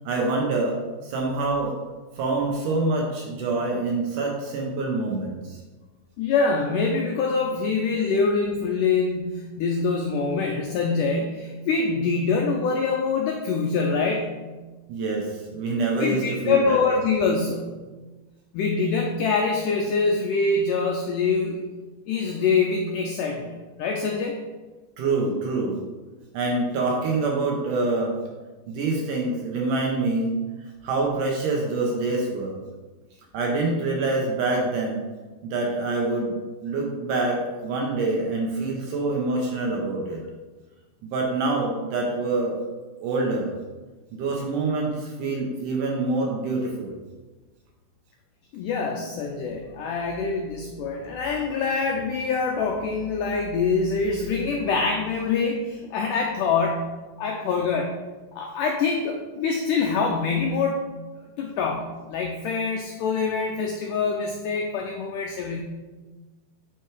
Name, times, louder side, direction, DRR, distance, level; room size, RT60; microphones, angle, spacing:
voice 1, 0.1-0.8 1.0-1.7 2.2-5.6 14.9-16.8 25.0-25.8 26.3-28.1 28.7-30.3 30.8-32.6 33.3-35.0 35.4-36.3 36.6-40.2 41.0-42.6 43.0-43.5 44.1-47.0, right 3 dB, 70° right, 0 dB, 2.1 m, -26 dB
voice 2, 6.2-14.3 16.0-17.7 18.5-21.6 22.1-24.4 48.5-57.9 58.3-60.8 61.4-65.6, left 4 dB, 90° left, 1 dB, 1.8 m, -25 dB
7.9 x 4.6 x 4.6 m, 1.3 s
omnidirectional pair, 4.5 m